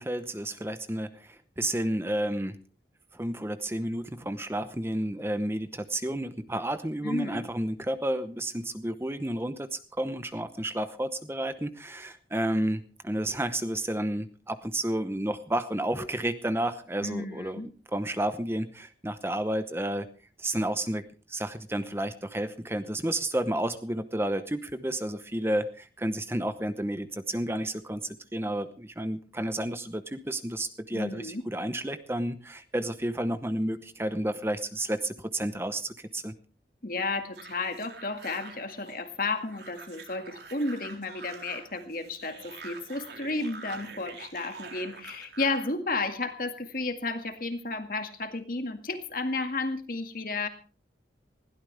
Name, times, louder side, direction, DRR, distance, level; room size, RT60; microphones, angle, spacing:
voice 1, 0.0-2.6 3.1-17.6 17.9-20.1 20.4-36.3, right 1 dB, 15° right, 11 dB, 0.8 m, -31 dB
voice 2, 7.0-7.5 17.0-17.7 30.9-31.4 36.8-50.5, left 3 dB, 50° left, 8 dB, 1.9 m, -32 dB
sound 1, 37.3-45.7, right 4 dB, 70° right, 4.0 m, -46 dB
20.5 x 16.5 x 3.4 m, 0.36 s
head